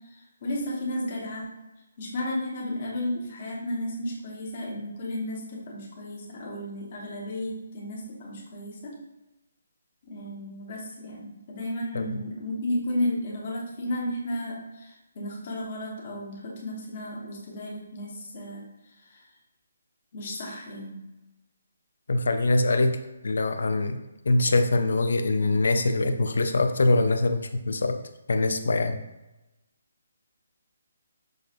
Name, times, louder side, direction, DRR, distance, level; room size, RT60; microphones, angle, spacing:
voice 1, 0.1-1.5 2.0-8.9 10.0-18.6 19.1-19.2 20.1-21.0, left 1 dB, 35° left, -4 dB, 1.1 m, -33 dB
voice 2, 22.1-23.0 23.2-28.0 28.3-29.0, left 2 dB, 75° left, 8 dB, 0.4 m, -23 dB
6.3 x 2.4 x 2.4 m, 1.0 s
hypercardioid pair, 170°, 0 cm